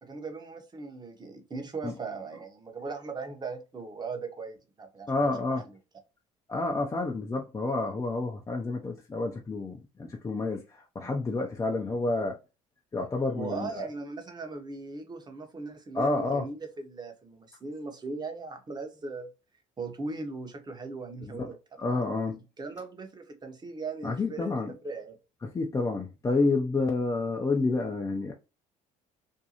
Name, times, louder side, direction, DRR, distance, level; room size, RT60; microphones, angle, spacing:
voice 1, 0.0-5.6 13.3-19.3 19.8-21.5 21.9-22.1 22.6-24.5 24.8-25.2, right 4 dB, 25° right, 0.9 m, -39 dB
voice 2, 5.1-5.7 6.5-12.4 12.9-13.9 15.9-16.5 21.2-21.5 21.8-22.4 24.0-24.8 25.4-28.3, left 3 dB, 20° left, 0.5 m, -29 dB
2.6 x 2.2 x 2.8 m
hypercardioid pair, 65°, 17 cm